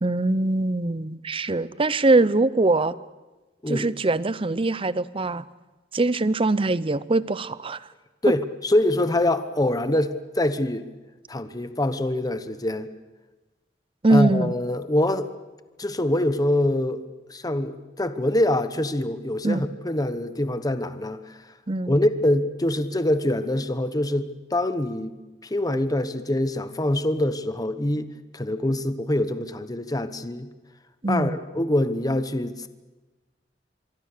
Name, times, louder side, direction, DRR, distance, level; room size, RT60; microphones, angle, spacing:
voice 1, 0.0-2.9 3.7-5.5 5.9-7.8 14.0-14.5 19.4-19.6 21.7-21.9 31.0-31.4, right 2 dB, 30° right, 17 dB, 0.7 m, -22 dB
voice 2, 8.2-10.9 11.3-12.9 14.1-15.3 15.8-17.0 17.3-21.4 21.9-30.5 31.1-32.7, left 1 dB, 20° left, 11 dB, 1.1 m, -24 dB
25.0 x 24.0 x 6.7 m, 1.2 s
head